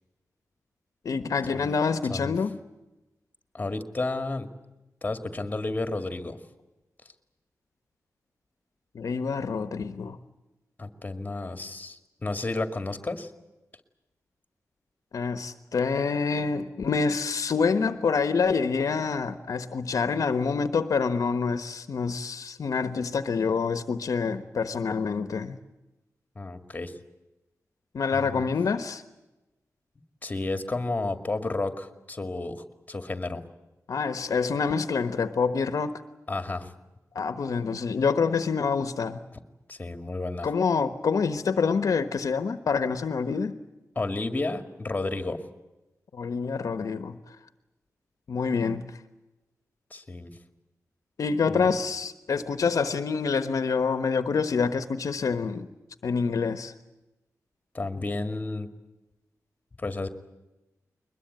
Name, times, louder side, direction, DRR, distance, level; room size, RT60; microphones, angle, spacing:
voice 1, 1.0-2.6 8.9-10.2 15.1-25.6 27.9-29.0 33.9-36.0 37.1-39.2 40.4-43.6 46.1-47.2 48.3-49.0 51.2-55.7 56.0-56.7, left 5 dB, 70° left, 1.2 m, -27 dB
voice 2, 3.5-4.5 5.0-6.4 10.8-13.3 26.4-26.9 28.1-28.5 30.2-33.4 36.3-36.7 39.3-39.4 39.7-40.5 44.0-45.4 49.9-50.4 51.5-51.7 57.7-58.7 59.8-60.1, left 2 dB, 25° left, 2.2 m, -32 dB
22.0 x 21.0 x 9.4 m
wide cardioid pair, 130°, 6 cm